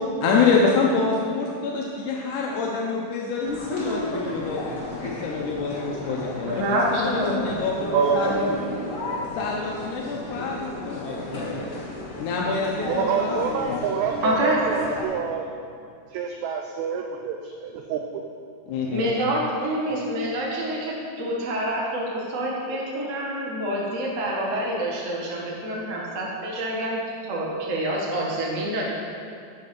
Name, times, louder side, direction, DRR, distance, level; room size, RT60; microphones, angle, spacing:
voice 1, 0.2-4.6 5.2-8.5 9.4-11.8 12.2-13.8 18.7-19.1, left 4 dB, 80° left, -2 dB, 2.2 m, -26 dB
sound 1, 3.4-15.1, left 1 dB, 35° left, 1.6 m, -33 dB
voice 2, 6.5-7.7 14.2-14.9 18.9-27.0 27.2-28.8, right 1 dB, 60° right, -3 dB, 0.8 m, -27 dB
voice 3, 7.9-8.3 12.9-15.5 16.1-18.2, right 6 dB, 80° right, 3 dB, 1.7 m, -27 dB
8.9 x 5.4 x 5.7 m, 2.3 s
omnidirectional pair, 3.5 m